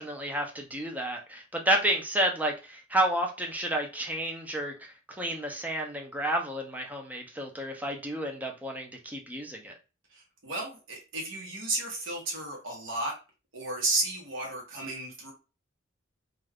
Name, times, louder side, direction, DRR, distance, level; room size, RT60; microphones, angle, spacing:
voice 1, 0.0-9.7, right 1 dB, 10° right, 2 dB, 0.5 m, -31 dB
voice 2, 10.1-13.2 13.5-15.3, right 2 dB, 70° right, -1 dB, 1.1 m, -33 dB
2.4 x 2.3 x 3.4 m, 0.31 s
head